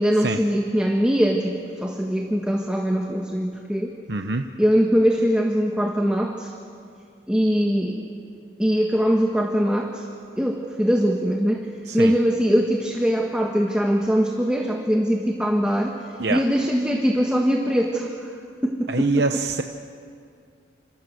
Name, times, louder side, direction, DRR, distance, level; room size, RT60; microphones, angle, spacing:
voice 1, 0.0-3.9 4.6-6.5 7.3-8.0 8.6-10.0 10.4-11.7 11.9-16.0 16.3-18.3 18.6-19.2, equal, 5° right, 1 dB, 1.6 m, -22 dB
voice 2, 4.1-4.4 11.9-12.1 16.2-16.4 18.9-19.6, right 3 dB, 65° right, 6 dB, 0.9 m, -24 dB
28.0 x 26.5 x 8.0 m, 2.3 s
head